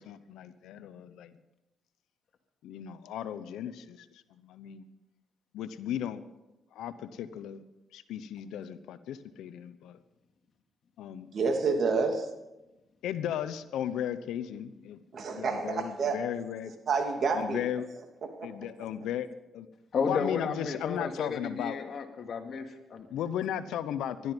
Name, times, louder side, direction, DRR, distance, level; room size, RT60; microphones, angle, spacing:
voice 1, 0.0-1.3 2.6-4.8 5.5-6.2 6.7-7.6 7.9-10.0 11.0-11.3 13.0-15.0 15.3-16.7 17.3-17.8 18.4-19.3 19.5-19.7 20.0-21.8 23.1-24.3, left 10 dB, 85° left, 0.9 m, -36 dB
voice 2, 11.3-12.3 15.1-16.2 16.9-17.6, right 4 dB, 55° right, 2.5 m, -28 dB
voice 3, 19.9-23.1, left 5 dB, 55° left, 2.2 m, -33 dB
20.0 x 12.5 x 5.3 m
cardioid pair, 90°, 0 cm